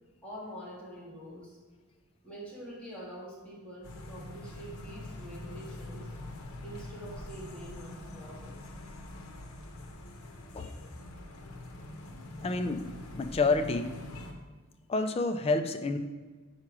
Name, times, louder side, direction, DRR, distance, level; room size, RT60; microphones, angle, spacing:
voice 1, 0.2-1.6 2.2-6.1 6.6-8.6, equal, 5° left, -7 dB, 1.8 m, -45 dB
sound 1, 3.8-14.3, left 1 dB, 85° left, 0.8 m, -44 dB
voice 2, 12.4-14.0 14.9-16.0, left 3 dB, 30° left, 7 dB, 0.4 m, -29 dB
4.8 x 4.5 x 6.0 m, 1.3 s
head